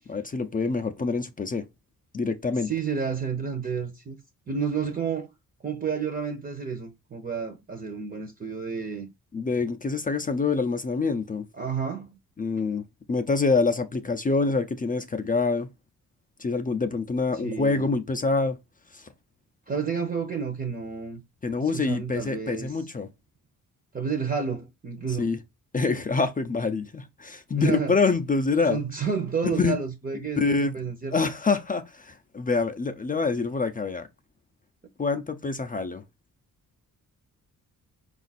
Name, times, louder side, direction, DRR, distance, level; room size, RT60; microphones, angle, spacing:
voice 1, 0.1-1.6 2.1-2.7 9.3-11.5 12.4-15.7 16.4-18.6 18.9-19.0 21.4-23.1 25.2-25.4 25.7-28.8 29.4-29.8 30.4-30.7 31.1-34.1 35.0-36.0, left 4 dB, 25° left, 0.4 m, -26 dB
voice 2, 2.6-4.2 4.5-5.3 5.6-9.1 11.5-12.2 17.4-17.9 19.7-21.2 21.6-22.8 23.9-25.3 27.5-28.0 28.7-31.3, right 6 dB, 25° right, 0.6 m, -30 dB
5.1 x 2.5 x 4.0 m
wide cardioid pair, 140°, 34 cm